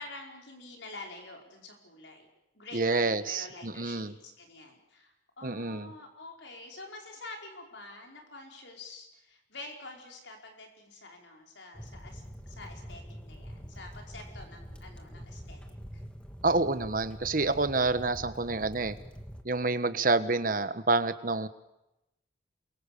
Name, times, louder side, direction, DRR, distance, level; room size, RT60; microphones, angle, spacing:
voice 1, 0.0-2.3 2.5-15.6 15.9-16.0, left 2 dB, 85° left, 2 dB, 5.1 m, -47 dB
voice 2, 2.7-4.1 5.4-5.9 16.4-19.0 19.4-21.5, right 3 dB, 50° right, 12 dB, 1.3 m, -28 dB
sound 1, 11.7-19.4, equal, 5° left, 1.8 m, -45 dB
28.5 x 23.5 x 6.9 m, 0.91 s
head